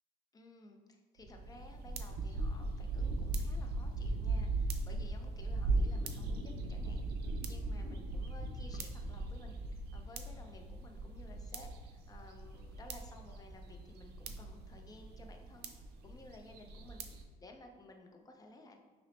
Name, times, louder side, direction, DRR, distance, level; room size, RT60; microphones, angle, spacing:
voice 1, 0.3-15.7 16.0-18.8, left 2 dB, 20° left, 3 dB, 0.5 m, -56 dB
sound 1, 1.2-17.2, right 2 dB, 75° right, 0.4 m, -38 dB
5.5 x 2.0 x 3.1 m, 1.4 s
cardioid pair, 110°, 17 cm